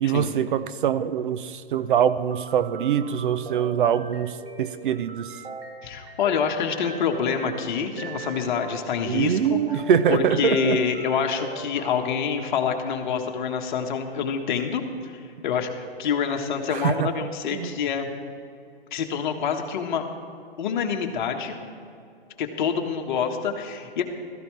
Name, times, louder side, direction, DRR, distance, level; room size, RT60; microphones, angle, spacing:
voice 1, 0.0-5.3 9.1-10.8 16.7-17.1 17.5-17.7, right 8 dB, 55° right, 14 dB, 0.6 m, -23 dB
sound 1, 2.3-12.1, right 4 dB, 85° right, 1.8 m, -39 dB
voice 2, 5.8-9.8 10.1-18.1 18.9-20.0 20.6-21.6 22.4-24.0, left 6 dB, 50° left, 4 dB, 1.5 m, -27 dB
15.5 x 14.0 x 3.3 m, 2.4 s
hypercardioid pair, 140°, 31 cm